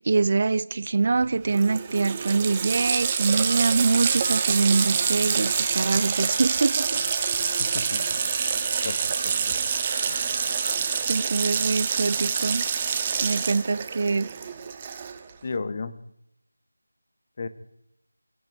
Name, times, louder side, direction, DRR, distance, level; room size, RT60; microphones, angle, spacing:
voice 1, 0.0-7.0 7.7-8.0 11.1-12.7 13.2-14.3, right 4 dB, 40° right, 0.7 m, -24 dB
Water tap faucet, 1.2-1.3 1.5-15.3, right 7 dB, 20° right, 1.3 m, -26 dB
sound 1, 3.3-10.9, left 1 dB, 65° left, 2.0 m, -40 dB
voice 2, 7.6-8.0 8.8-9.0 9.2-9.3 15.4-15.9 17.4-17.5, left 4 dB, 30° left, 1.3 m, -32 dB
23.5 x 13.5 x 9.1 m
figure-of-eight pair, 165°, 0 cm